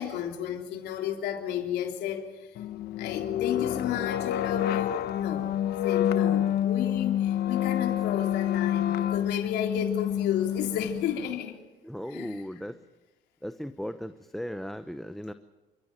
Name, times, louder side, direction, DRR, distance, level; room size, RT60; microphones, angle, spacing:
voice 1, 0.0-2.6 3.0-11.6 12.1-12.7, left 9 dB, 80° left, 3.5 m, -33 dB
sound 1, 2.6-11.3, left 11 dB, 65° left, 1.2 m, -28 dB
voice 2, 11.8-12.7 13.4-15.3, equal, ahead, 0.9 m, -37 dB
28.5 x 15.5 x 7.6 m
cardioid pair, 110°, 17 cm